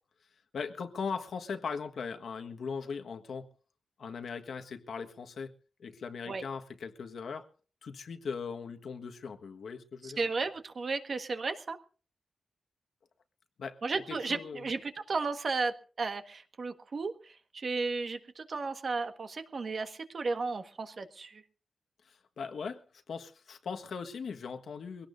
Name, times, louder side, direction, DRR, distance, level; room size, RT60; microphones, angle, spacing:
voice 1, 0.5-3.5 4.0-5.5 5.8-7.5 7.8-10.2 13.6-13.8 14.1-14.7 22.0-25.1, left 5 dB, 70° left, 6 dB, 1.5 m, -39 dB
voice 2, 10.0-11.8 13.8-21.4, right 4 dB, 45° right, 7 dB, 1.5 m, -34 dB
23.5 x 17.5 x 2.6 m, 0.37 s
wide cardioid pair, 150°, 0 cm